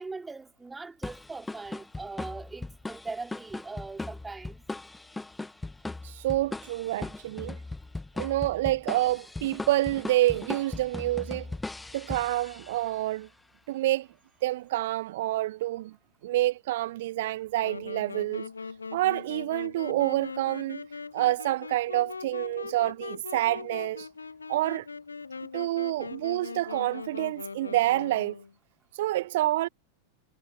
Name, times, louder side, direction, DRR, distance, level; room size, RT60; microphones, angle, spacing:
voice 1, 0.0-4.6, right 3 dB, 10° right, 3.2 m, -40 dB
sound 1, 1.0-13.0, left 2 dB, 10° left, 1.5 m, -39 dB
voice 2, 6.0-7.6 8.2-11.5 11.9-13.3 13.7-14.1 14.4-15.9 16.2-18.5 18.9-20.8 21.1-24.1 24.5-24.9 25.5-28.3 28.9-29.7, right 16 dB, 55° right, 1.2 m, -28 dB
Wind instrument woodwind instrument, 17.6-28.5, left 4 dB, 75° left, 0.7 m, -40 dB
figure-of-eight pair, 90°, 0 cm